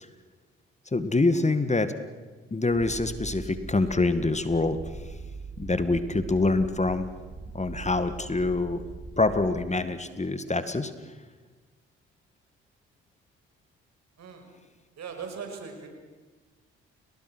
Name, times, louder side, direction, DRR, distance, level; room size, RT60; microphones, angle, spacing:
voice 1, 0.9-1.9 2.5-4.8 5.6-7.1 7.5-8.8 9.2-10.9, left 3 dB, 20° left, 11 dB, 1.9 m, -25 dB
Purr, 2.7-9.7, right 4 dB, 40° right, 3.0 m, -41 dB
voice 2, 14.2-14.5 15.0-15.9, right 6 dB, 60° right, 4 dB, 5.9 m, -39 dB
30.0 x 19.0 x 6.3 m, 1.4 s
hypercardioid pair, 50°, 30 cm